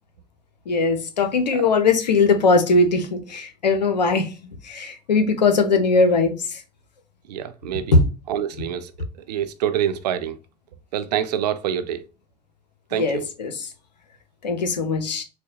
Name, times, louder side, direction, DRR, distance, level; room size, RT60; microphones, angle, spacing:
voice 1, 0.7-4.3 4.6-6.6 7.9-8.0 12.9-13.7 14.4-15.2, left 3 dB, 85° left, 0.7 m, -20 dB
voice 2, 7.3-7.9 8.3-8.9 9.3-10.4 10.9-12.0 12.9-13.2, right 10 dB, 75° right, 0.5 m, -26 dB
4.0 x 2.1 x 2.7 m
hypercardioid pair, 75°, 21 cm